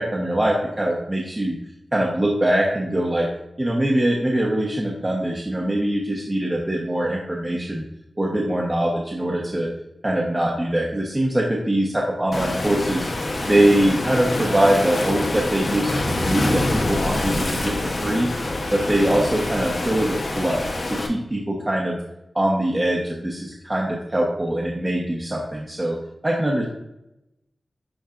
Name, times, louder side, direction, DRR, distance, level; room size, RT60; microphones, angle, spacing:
voice 1, 0.0-1.6 1.9-3.3 3.6-7.8 8.2-9.7 10.0-13.1 13.5-17.7 18.0-20.6 20.9-22.0 22.3-26.0 26.2-26.6, right 1 dB, 25° right, -3 dB, 1.2 m, -22 dB
Waves surf, 12.3-21.1, left 2 dB, 60° left, 1.1 m, -25 dB
11.5 x 4.3 x 2.6 m, 0.86 s
wide cardioid pair, 90°, 0 cm